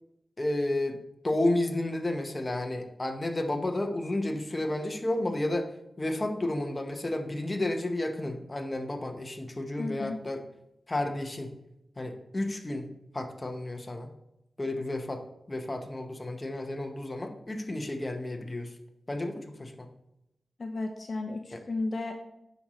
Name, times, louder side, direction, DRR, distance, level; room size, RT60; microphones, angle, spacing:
voice 1, 0.4-1.0 1.2-5.7 6.0-10.4 10.9-11.5 12.0-12.9 13.1-14.1 14.6-15.2 15.5-18.7 19.1-19.9 21.5-21.6, left 1 dB, 25° left, 4 dB, 0.9 m, -31 dB
voice 2, 9.8-10.2 20.6-22.1, left 2 dB, 50° left, 4 dB, 0.6 m, -33 dB
9.5 x 6.3 x 3.1 m, 0.84 s
wide cardioid pair, 105°, 0 cm